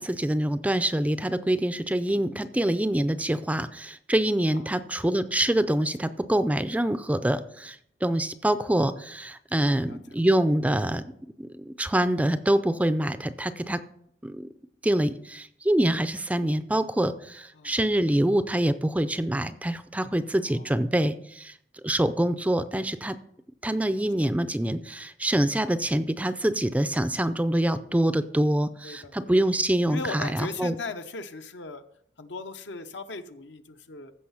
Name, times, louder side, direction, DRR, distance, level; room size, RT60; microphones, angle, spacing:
voice 1, 0.0-11.0 11.4-13.8 14.2-14.5 14.8-21.5 21.8-23.2 23.6-30.7, right 1 dB, 10° right, 12 dB, 0.4 m, -25 dB
voice 2, 2.1-2.5 4.5-4.7 5.8-5.9 9.6-10.0 17.5-17.9 20.4-20.8 23.7-24.1 28.8-29.3 29.9-31.8 32.2-34.1, left 3 dB, 70° left, 8 dB, 0.8 m, -39 dB
15.0 x 5.5 x 5.7 m, 0.70 s
head